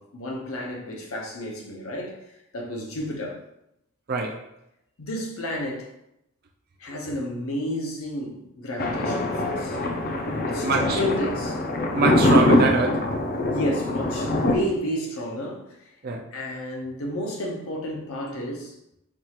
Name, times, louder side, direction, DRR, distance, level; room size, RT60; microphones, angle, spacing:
voice 1, 0.0-2.2 2.5-3.4 5.0-5.9 6.8-9.8 10.4-11.6 13.5-15.9 16.3-18.7, left 1 dB, 70° left, 0.8 m, -31 dB
voice 2, 4.1-4.5 10.6-11.0 11.9-13.1 16.0-16.3, right 3 dB, 45° right, 0.4 m, -24 dB
Thunder, 8.8-14.5, left 1 dB, 40° left, 0.4 m, -23 dB
4.7 x 2.4 x 2.9 m
head